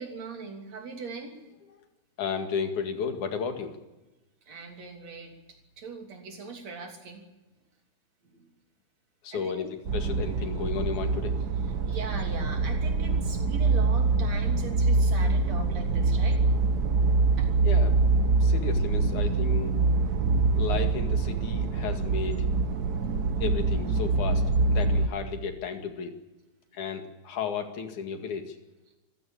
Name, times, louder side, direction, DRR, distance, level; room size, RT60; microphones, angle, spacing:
voice 1, 0.0-1.4 4.5-5.3 5.8-7.2 8.3-8.4 9.3-9.7 11.9-16.4 17.4-17.5, right 4 dB, 65° right, 3 dB, 4.3 m, -40 dB
voice 2, 2.2-3.8 9.2-11.4 17.6-18.0 18.4-19.8 20.6-22.5 23.4-24.4 24.7-26.1 26.7-28.6, left 6 dB, 85° left, 5 dB, 3.6 m, -33 dB
sound 1, 9.8-25.1, right 3 dB, 80° right, 0.8 m, -25 dB
25.0 x 16.0 x 8.8 m, 1.1 s
omnidirectional pair, 3.4 m